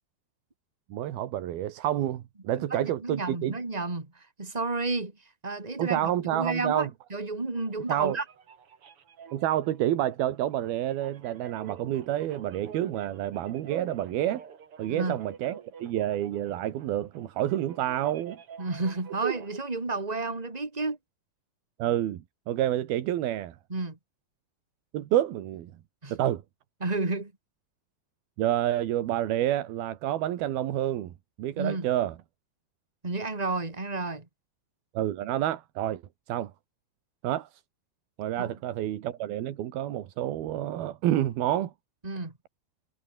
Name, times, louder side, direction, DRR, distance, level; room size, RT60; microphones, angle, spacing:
voice 1, 0.9-3.5 5.8-6.9 7.9-8.2 9.3-14.4 14.8-18.4 19.2-19.3 21.8-23.6 24.9-25.7 26.1-26.4 28.4-31.1 31.4-32.2 34.9-36.0 36.3-36.5 37.2-37.5 38.2-41.7, right 12 dB, 65° right, 3.2 m, -29 dB
voice 2, 2.7-5.1 5.4-8.2 14.9-15.2 18.6-21.0 23.7-24.0 26.0-26.1 26.8-27.3 31.6-31.9 33.0-34.2 38.4-38.5 42.0-42.3, right 3 dB, 15° right, 1.6 m, -31 dB
sound 1, 7.5-19.6, right 7 dB, 40° right, 2.3 m, -48 dB
omnidirectional pair, 5.1 m